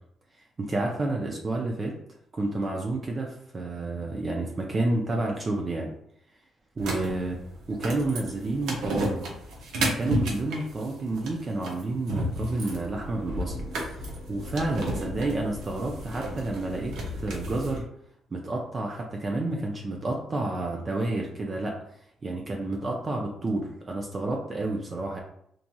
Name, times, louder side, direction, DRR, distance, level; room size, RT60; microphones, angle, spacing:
voice 1, 0.6-1.9 2.3-5.9 6.8-7.4 7.7-9.3 9.8-13.7 14.3-17.9 18.3-21.8 22.2-25.2, right 2 dB, 35° right, 0 dB, 0.4 m, -30 dB
sound 1, 6.8-17.8, right 1 dB, 80° right, 0.6 m, -33 dB
2.8 x 2.6 x 2.2 m, 0.71 s
cardioid pair, 90°, 0 cm